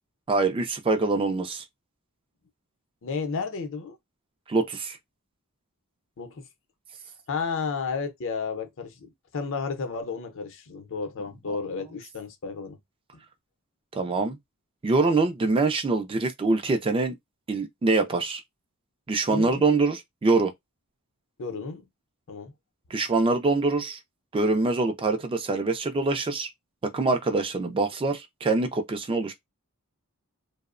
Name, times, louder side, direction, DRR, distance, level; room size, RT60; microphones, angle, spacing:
voice 1, 0.3-1.6 4.5-5.0 13.9-14.4 14.8-17.1 17.5-18.4 19.1-20.5 22.9-24.0 24.3-26.5 26.8-29.3, right 3 dB, 25° right, 0.3 m, -24 dB
voice 2, 3.0-4.0 6.2-6.4 7.3-12.8 19.3-19.8 21.4-21.9 22.3-22.5, left 5 dB, 60° left, 0.6 m, -32 dB
2.7 x 2.0 x 2.4 m
head